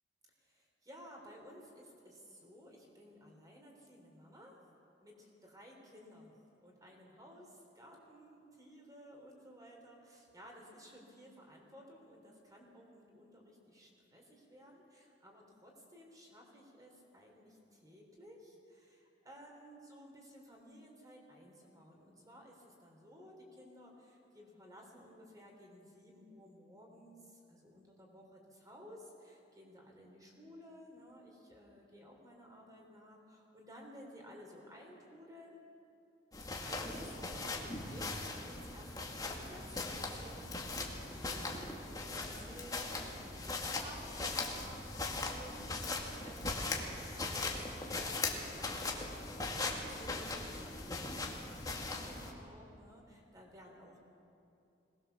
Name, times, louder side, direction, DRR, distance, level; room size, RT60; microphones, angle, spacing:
voice 1, 0.4-4.6 5.0-6.3 6.6-35.6 36.6-54.0, equal, 20° right, 0 dB, 3.9 m, -56 dB
sound 1, 36.3-52.3, left 3 dB, 20° left, 2.0 m, -39 dB
22.0 x 19.5 x 7.0 m, 2.7 s
head